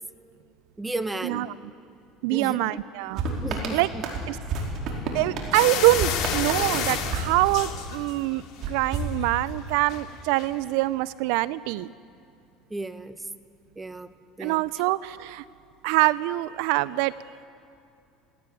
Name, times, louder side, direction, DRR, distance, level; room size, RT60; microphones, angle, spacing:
voice 1, 0.8-1.5 2.3-2.8 3.4-4.0 12.7-13.2 13.8-14.1 14.4-14.6, right 2 dB, 15° right, 10 dB, 1.3 m, -33 dB
voice 2, 2.2-3.2 3.7-3.9 4.3-4.4 5.1-11.9 14.4-15.4 15.8-17.1, right 19 dB, 75° right, 18 dB, 0.4 m, -24 dB
sound 1, 3.2-8.0 8.6-9.8, right 3 dB, 60° right, 4.7 m, -31 dB
sound 2, 5.5-8.4 8.8-9.2 9.9-10.0 10.4-10.5, left 7 dB, 60° left, 2.8 m, -30 dB
18.5 x 17.5 x 9.1 m, 2.6 s
hypercardioid pair, 85°, 0 cm